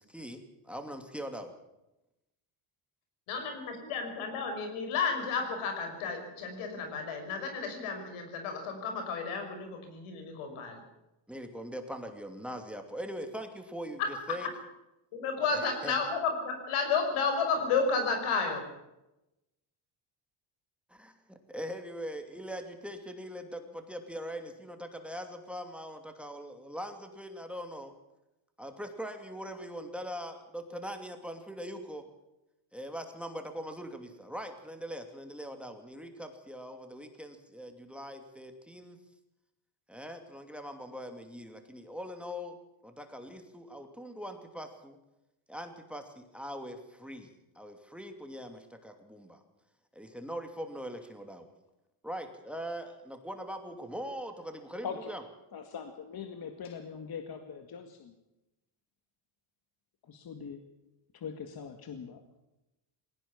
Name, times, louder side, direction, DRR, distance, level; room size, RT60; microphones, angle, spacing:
voice 1, 0.0-1.5 11.3-14.5 15.5-15.9 20.9-27.9 28.6-32.0 32.7-39.0 39.9-42.6 42.8-45.0 45.5-49.4 49.9-51.5 52.0-55.2, equal, ahead, 6 dB, 2.7 m, -41 dB
voice 2, 3.3-10.8 14.0-14.1 15.1-18.7, left 5 dB, 90° left, 5 dB, 5.8 m, -32 dB
voice 3, 55.5-58.1 60.0-60.6 61.1-62.4, left 6 dB, 45° left, 6 dB, 2.1 m, -42 dB
20.0 x 18.0 x 7.2 m, 0.93 s
cardioid pair, 110°, 49 cm